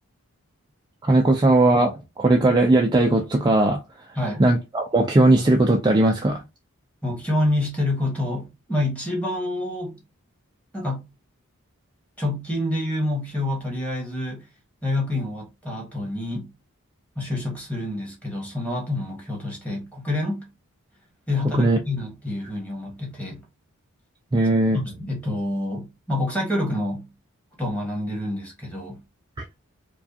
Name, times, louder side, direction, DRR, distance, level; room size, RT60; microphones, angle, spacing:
voice 1, 1.0-3.8 4.4-6.4 21.6-21.8 24.3-24.8, right 2 dB, 20° right, 0.3 m, -18 dB
voice 2, 4.2-4.5 7.0-10.0 10.7-11.1 12.2-14.5 14.8-16.5 17.1-20.5 21.3-23.5 24.7-27.1 27.6-29.0, left 1 dB, 5° left, 1.3 m, -27 dB
4.6 x 2.3 x 2.7 m
head